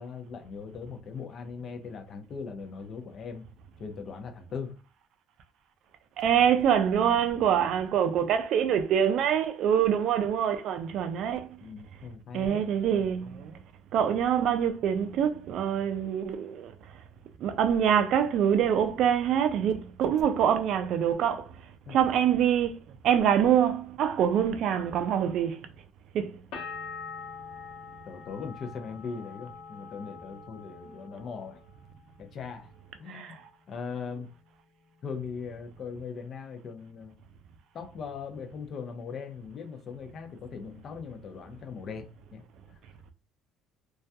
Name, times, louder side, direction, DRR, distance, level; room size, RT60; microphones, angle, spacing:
voice 1, 0.0-3.4 3.8-4.8 11.6-12.7 21.9-22.0 28.1-31.6 32.2-32.7 33.0-34.3 35.0-37.1 37.7-42.0 42.3-42.4, left 5 dB, 35° left, 0.4 m, -39 dB
voice 2, 6.2-11.5 12.3-13.5 13.9-16.7 17.4-21.5 21.9-22.8 23.0-25.6 26.1-26.4 33.1-33.4, right 9 dB, 50° right, 0.3 m, -25 dB
sound 1, 26.5-32.2 32.5-33.2, left 5 dB, 65° left, 0.8 m, -44 dB
2.3 x 2.1 x 2.6 m
cardioid pair, 165°, 0 cm